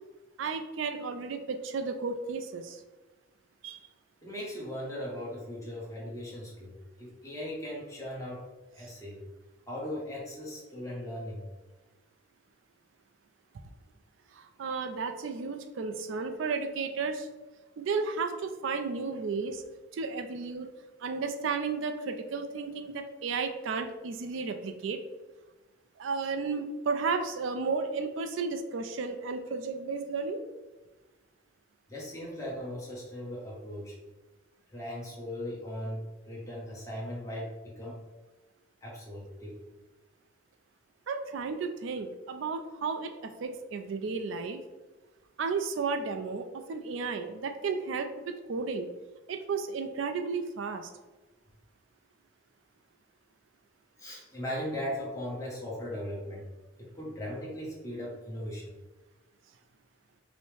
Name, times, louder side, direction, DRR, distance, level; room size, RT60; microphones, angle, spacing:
voice 1, 0.4-2.8 3.6-3.8 14.3-17.3 17.8-19.6 19.9-20.7 21.0-25.0 26.0-30.4 41.1-44.6 45.4-48.9 49.3-50.9, right 4 dB, 75° right, 6 dB, 0.4 m, -33 dB
voice 2, 4.2-8.4 8.7-9.2 9.7-11.5 31.9-33.9 34.7-38.0 38.8-39.6 54.0-56.5 56.8-58.7, equal, 15° left, -4 dB, 1.0 m, -38 dB
5.3 x 2.1 x 3.2 m, 1.2 s
head